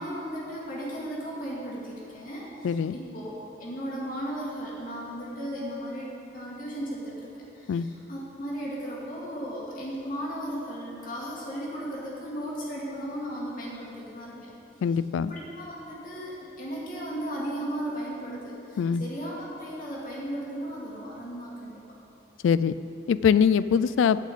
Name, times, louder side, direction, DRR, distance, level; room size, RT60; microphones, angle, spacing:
voice 1, 0.0-3.3 3.6-14.5 15.2-21.8, equal, 45° left, -5 dB, 2.3 m, -36 dB
voice 2, 2.6-2.9 7.7-7.9 14.8-15.3 18.8-19.0 22.4-22.7 23.1-24.2, left 7 dB, 90° left, 15 dB, 0.3 m, -22 dB
8.1 x 6.6 x 8.4 m, 2.9 s
head